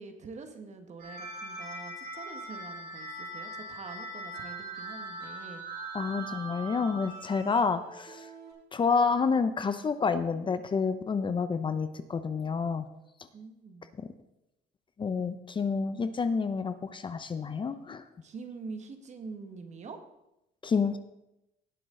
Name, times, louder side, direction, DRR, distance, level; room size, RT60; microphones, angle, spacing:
voice 1, 0.0-5.6 13.3-13.9 18.2-20.0, right 4 dB, 45° right, 7 dB, 1.4 m, -45 dB
sound 1, 1.0-8.5, right 2 dB, 65° right, 4.6 m, -41 dB
voice 2, 5.9-8.3 8.7-12.9 14.0-14.1 15.0-18.0 20.6-21.0, left 5 dB, 30° left, 11 dB, 0.6 m, -29 dB
18.0 x 6.1 x 3.8 m, 0.88 s
cardioid pair, 110°, 17 cm